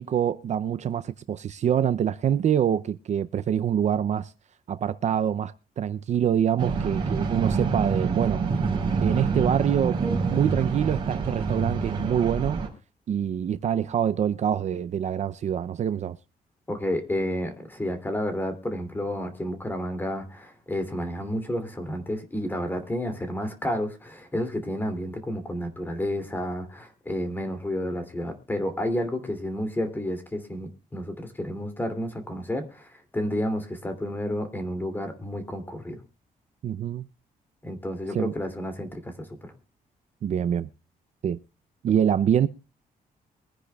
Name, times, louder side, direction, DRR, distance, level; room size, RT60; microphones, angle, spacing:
voice 1, 0.0-4.3 4.7-8.4 9.0-12.6 13.1-16.2 36.6-37.1 38.1-38.3 40.2-40.7 41.2-41.4 41.8-42.5, right 9 dB, 50° right, 0.5 m, -25 dB
sound 1, 6.6-12.7, right 4 dB, 35° right, 4.3 m, -27 dB
voice 2, 16.7-36.0 37.6-39.5, equal, 15° left, 2.6 m, -31 dB
23.5 x 10.0 x 2.3 m
cardioid pair, 140°, 15 cm